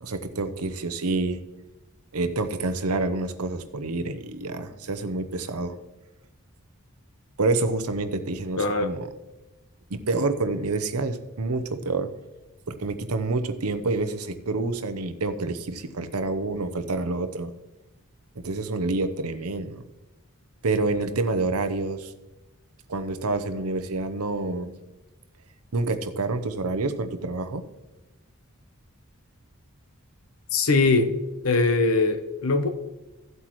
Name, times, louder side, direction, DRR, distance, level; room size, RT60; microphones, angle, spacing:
voice 1, 0.0-1.4 2.1-5.8 7.4-9.1 9.9-12.1 12.7-17.5 18.4-19.8 20.6-22.1 22.9-24.7 25.7-27.6, right 3 dB, 80° right, 0.8 m, -28 dB
voice 2, 8.6-8.9 30.5-31.1 31.4-32.7, left 3 dB, 70° left, 1.0 m, -21 dB
15.0 x 7.9 x 3.1 m
head